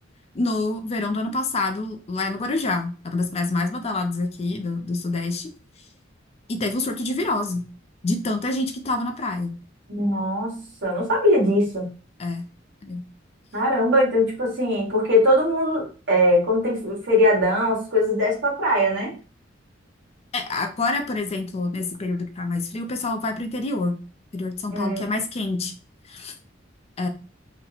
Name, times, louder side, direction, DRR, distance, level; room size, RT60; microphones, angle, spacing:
voice 1, 0.3-5.5 6.5-7.6 8.0-9.6 12.2-12.4 12.8-13.0 20.3-24.0 24.3-25.7 26.1-26.3 27.0-27.1, left 2 dB, 35° left, 7 dB, 0.4 m, -27 dB
voice 2, 9.9-11.9 13.5-19.1 24.7-25.0, left 1 dB, 65° right, -3 dB, 1.8 m, -21 dB
3.9 x 2.1 x 2.8 m, 0.35 s
head